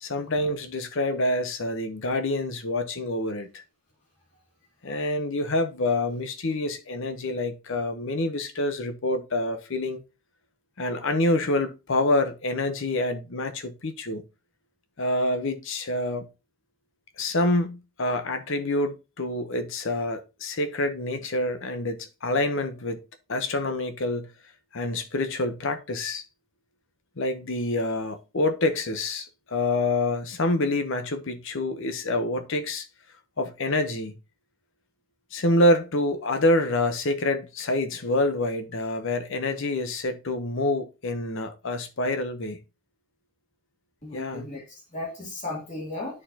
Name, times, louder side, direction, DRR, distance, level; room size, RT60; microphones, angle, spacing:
voice 1, 0.0-3.6 4.8-10.0 10.8-14.2 15.0-16.3 17.2-23.0 23.3-24.3 24.7-26.2 27.2-32.9 33.4-34.2 35.3-42.6 44.1-44.5, left 2 dB, 55° left, 0.8 m, -27 dB
voice 2, 44.0-46.2, left 2 dB, 35° left, 2.4 m, -36 dB
9.7 x 4.5 x 2.8 m
head